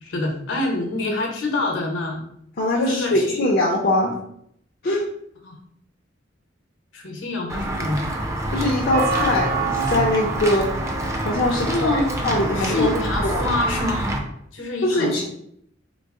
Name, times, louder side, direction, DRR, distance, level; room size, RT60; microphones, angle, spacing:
voice 1, 0.0-2.2 2.7-3.4 5.4-5.6 6.9-8.0 11.5-14.1 14.5-15.2, left 2 dB, 70° left, 1 dB, 0.9 m, -26 dB
voice 2, 2.6-4.1 4.8-5.1 8.5-10.7 11.2-13.4 14.8-15.2, left 1 dB, 55° left, -3 dB, 0.6 m, -22 dB
Walk footsteps / Bell, 7.5-14.2, right 2 dB, 15° right, 0.5 m, -25 dB
3.9 x 2.0 x 3.6 m, 0.70 s
head